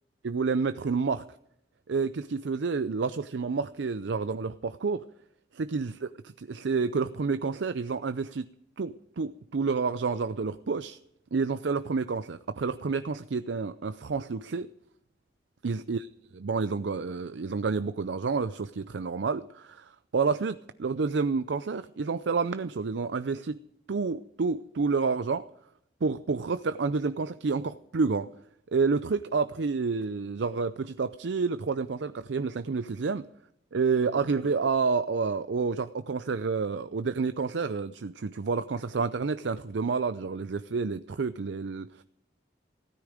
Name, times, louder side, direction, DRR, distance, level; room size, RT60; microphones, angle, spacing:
voice 1, 0.2-1.2 1.9-5.0 5.5-8.5 8.8-11.0 11.3-14.7 15.6-16.1 16.4-23.6 23.9-25.5 26.0-28.3 28.7-33.3 33.7-42.0, right 4 dB, 90° right, 0.5 m, -29 dB
16.0 x 13.5 x 5.0 m
head